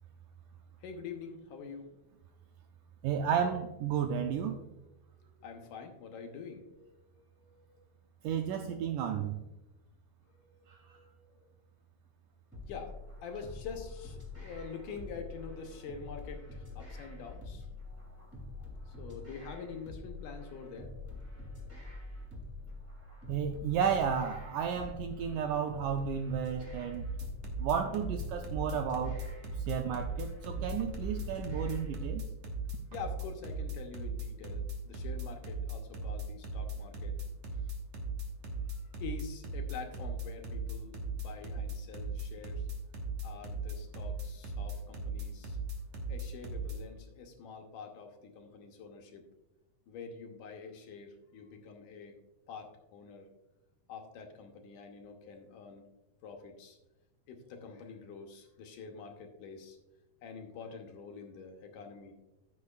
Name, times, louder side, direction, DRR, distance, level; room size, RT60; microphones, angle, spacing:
voice 1, 0.8-1.9 5.4-7.1 7.4-7.9 10.4-10.5 10.9-11.5 12.7-13.0 13.2-17.7 18.9-20.9 27.8-28.1 32.9-37.2 38.7-42.7 43.2-45.6 46.1-49.2 49.9-52.1 52.5-53.3 53.9-55.8 56.2-56.8 57.3-59.8 60.2-62.1, left 5 dB, 70° left, 3 dB, 2.2 m, -46 dB
voice 2, 3.0-4.6 8.2-9.4 23.3-27.1 27.6-29.2 29.7-32.2, right 7 dB, 85° right, 5 dB, 1.8 m, -32 dB
sound 1, 12.5-32.1, left 2 dB, 5° right, 1.7 m, -46 dB
sound 2, 26.9-46.8, right 2 dB, 60° right, 2.4 m, -37 dB
15.0 x 6.5 x 2.4 m, 0.96 s
omnidirectional pair, 4.2 m